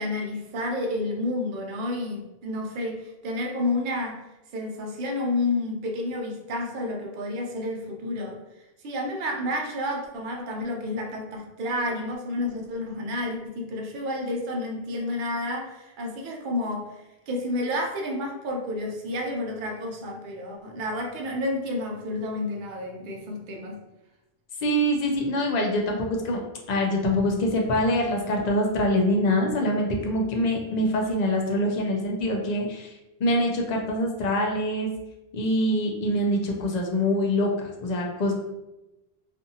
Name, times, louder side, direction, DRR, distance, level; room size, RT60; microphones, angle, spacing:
voice 1, 0.0-4.2 4.5-8.4 8.8-23.8, left 1 dB, 60° right, 1 dB, 0.7 m, -30 dB
voice 2, 24.6-26.4 26.7-32.9 33.2-34.9 35.3-38.3, left 1 dB, 50° left, 1 dB, 0.6 m, -24 dB
2.6 x 2.4 x 2.6 m, 0.97 s
omnidirectional pair, 1.0 m